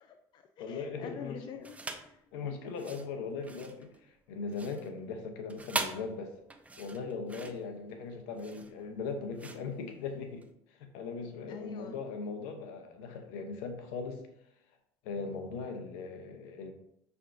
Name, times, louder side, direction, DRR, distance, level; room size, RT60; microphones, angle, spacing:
voice 1, 0.0-2.2 11.5-12.0, left 7 dB, 45° left, 6 dB, 0.4 m, -46 dB
voice 2, 0.6-1.5 2.3-6.3 6.8-14.3 15.0-16.7, left 4 dB, 80° left, 6 dB, 0.8 m, -39 dB
sound 1, 1.6-2.2 2.7-10.5, right 3 dB, 15° right, 0.4 m, -41 dB
5.8 x 3.5 x 2.6 m, 0.78 s
supercardioid pair, 95°, 10 cm